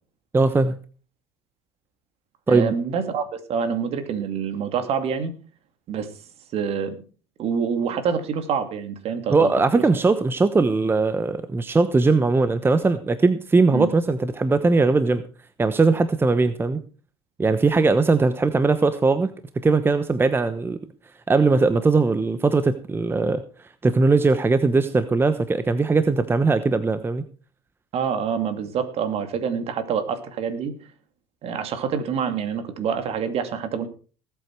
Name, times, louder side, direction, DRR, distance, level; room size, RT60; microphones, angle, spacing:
voice 1, 0.3-0.7 2.5-2.7 9.3-15.2 15.6-16.8 17.4-19.3 19.6-20.8 21.3-23.4 23.8-27.2, right 3 dB, 15° right, 12 dB, 1.0 m, -20 dB
voice 2, 2.5-5.4 5.9-6.1 6.5-7.0 7.4-9.8 13.7-13.9 27.9-30.7 31.4-33.9, right 7 dB, 50° right, 9 dB, 2.5 m, -26 dB
18.5 x 8.3 x 4.7 m, 0.39 s
hypercardioid pair, 85°, 13 cm